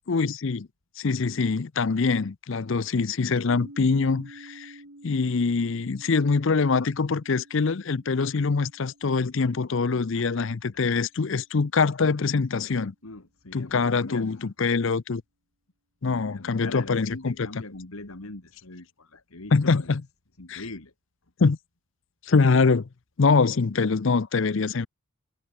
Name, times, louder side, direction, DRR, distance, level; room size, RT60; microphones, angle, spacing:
voice 1, 0.1-0.7 1.0-4.7 5.0-12.9 13.5-15.2 16.0-17.6 19.5-20.0 20.5-20.6 21.4-21.6 22.3-22.9 23.2-24.9, left 4 dB, 60° left, 0.6 m, -24 dB
sound 1, 3.5-11.3, right 1 dB, 65° right, 3.0 m, -51 dB
voice 2, 13.0-14.4 16.0-19.9 20.4-20.9, left 2 dB, 80° left, 2.3 m, -41 dB
head